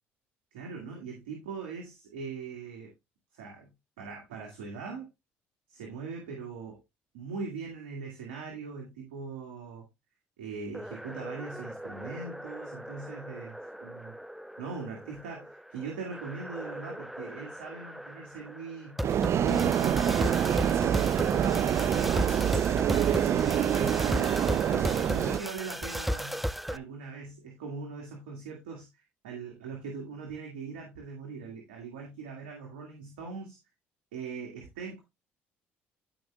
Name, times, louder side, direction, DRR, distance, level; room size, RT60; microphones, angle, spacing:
voice 1, 0.5-2.9 3.3-3.7 4.0-5.1 5.7-6.8 7.1-9.9 10.4-14.1 14.6-19.0 19.4-26.4 26.7-33.6 34.1-35.0, right 5 dB, 85° right, 0 dB, 2.1 m, -41 dB
sound 1, 10.7-26.8, equal, ahead, 0.6 m, -36 dB
sound 2, 19.0-25.4, right 9 dB, 50° right, 0.5 m, -26 dB
14.5 x 5.2 x 2.3 m, 0.21 s
hypercardioid pair, 60°, 6 cm